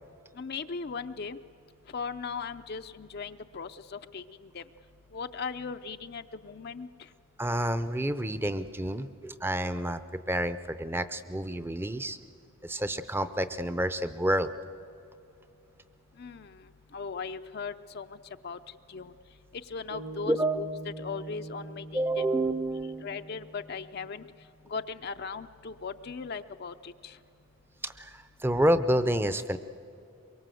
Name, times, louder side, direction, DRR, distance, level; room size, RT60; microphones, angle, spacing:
voice 1, 0.3-1.4 1.9-4.6 5.1-7.1 16.2-18.2 18.4-19.1 19.5-20.7 21.0-22.3 23.0-24.3 24.7-27.2, left 5 dB, 45° left, 8 dB, 0.5 m, -38 dB
voice 2, 7.4-10.0 10.3-12.2 12.6-14.5 20.3-20.6 21.9-23.1 27.8-29.6, right 1 dB, 10° right, 12 dB, 0.6 m, -29 dB
sound 1, 19.9-24.3, right 2 dB, 80° right, 3.1 m, -44 dB
23.5 x 23.0 x 7.7 m, 2.7 s
head